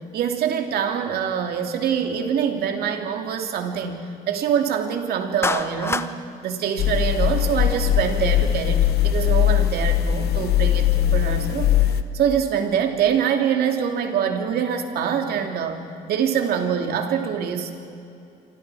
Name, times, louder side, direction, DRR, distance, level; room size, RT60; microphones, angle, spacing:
voice 1, 0.1-6.2 6.4-15.8 16.1-17.7, right 8 dB, 65° right, 4 dB, 2.7 m, -24 dB
Clapping, 5.4-6.1, left 3 dB, 15° left, 1.0 m, -25 dB
sound 1, 6.8-12.0, left 11 dB, 70° left, 1.1 m, -20 dB
27.5 x 25.0 x 4.9 m, 2.7 s
cardioid pair, 110°, 17 cm